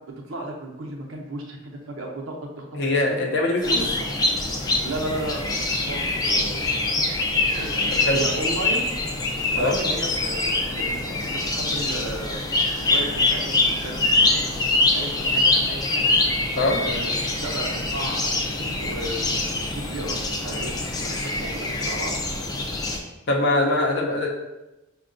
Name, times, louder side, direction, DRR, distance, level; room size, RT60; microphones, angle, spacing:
voice 1, 0.3-3.2 3.8-4.1 4.8-6.8 7.6-8.8 9.5-12.5 12.8-16.1 16.7-17.1 17.4-22.2, right 1 dB, 90° right, 0 dB, 0.7 m, -34 dB
voice 2, 2.7-3.8 8.1-8.2 9.6-9.8 16.6-16.8 23.3-24.3, left 2 dB, 60° left, 0 dB, 0.6 m, -22 dB
sound 1, 3.6-23.0, left 2 dB, 20° left, 0.4 m, -24 dB
5.3 x 2.2 x 2.5 m, 1.0 s
head